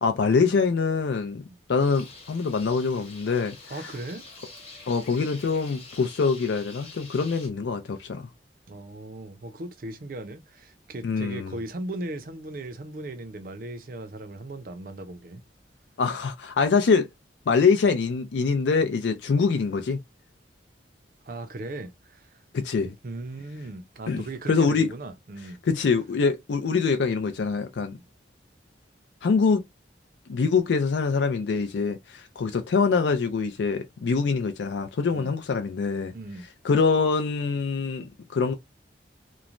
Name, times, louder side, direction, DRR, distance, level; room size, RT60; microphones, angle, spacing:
voice 1, 0.0-1.4 1.7-3.9 4.9-8.3 11.0-11.6 16.0-17.1 17.5-20.0 22.5-22.9 24.1-24.9 25.7-28.0 29.2-29.6 30.3-36.1 36.6-38.5, left 5 dB, 75° left, 0.4 m, -24 dB
sound 1, 1.8-7.5, left 3 dB, 35° left, 1.0 m, -46 dB
voice 2, 3.7-4.3 8.7-15.4 21.2-22.3 22.8-25.6 27.9-28.0 35.1-35.3 36.1-36.5, right 2 dB, 50° right, 0.5 m, -38 dB
3.0 x 2.1 x 2.4 m
head